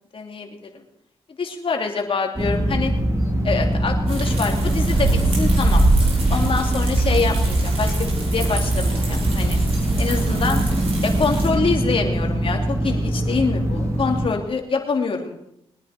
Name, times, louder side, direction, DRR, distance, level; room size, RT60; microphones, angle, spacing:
voice 1, 0.1-0.8 1.4-2.9 3.4-5.8 6.3-9.6 10.0-10.6 11.0-15.4, left 4 dB, 55° left, 2 dB, 2.9 m, -25 dB
sound 1, 2.4-14.3, right 1 dB, 25° right, 3.1 m, -23 dB
sound 2, 4.1-11.5, right 2 dB, 60° right, 5.8 m, -23 dB
22.0 x 9.9 x 4.5 m, 0.78 s
cardioid pair, 65°, 11 cm